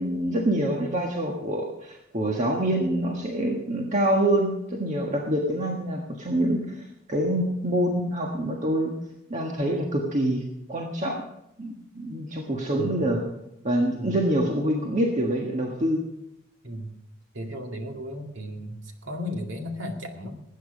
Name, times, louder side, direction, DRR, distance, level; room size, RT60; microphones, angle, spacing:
voice 1, 0.0-8.9 9.3-10.4 10.7-11.2 11.6-13.2 13.6-16.0, right 1 dB, 35° right, 0 dB, 1.5 m, -26 dB
voice 2, 12.7-13.0 14.0-14.2 16.6-16.9 17.3-20.4, equal, 60° right, 3 dB, 2.2 m, -35 dB
19.5 x 9.3 x 5.1 m, 0.85 s
head